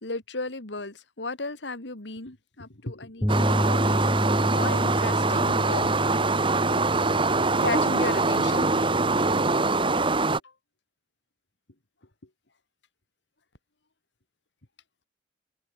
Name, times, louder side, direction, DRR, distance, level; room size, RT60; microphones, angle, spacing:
voice 1, 0.0-4.0 4.5-5.9 7.6-8.7, left 3 dB, 75° left, 2.4 m, -34 dB
sound 1, 3.2-9.5, equal, 5° left, 1.1 m, -30 dB
sound 2, 3.3-10.4, right 3 dB, 30° right, 2.2 m, -23 dB
open air
head